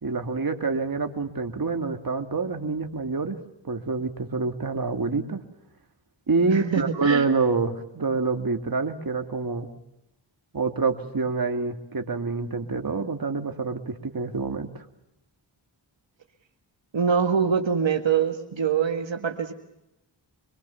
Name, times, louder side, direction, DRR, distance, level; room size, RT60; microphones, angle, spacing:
voice 1, 0.0-3.4 3.6-5.4 6.3-9.7 10.5-14.8, right 4 dB, 50° right, 5 dB, 2.3 m, -27 dB
voice 2, 6.5-7.2 16.9-19.5, right 7 dB, 75° right, 4 dB, 1.8 m, -24 dB
25.5 x 22.0 x 7.0 m, 0.86 s
wide cardioid pair, 60°, 46 cm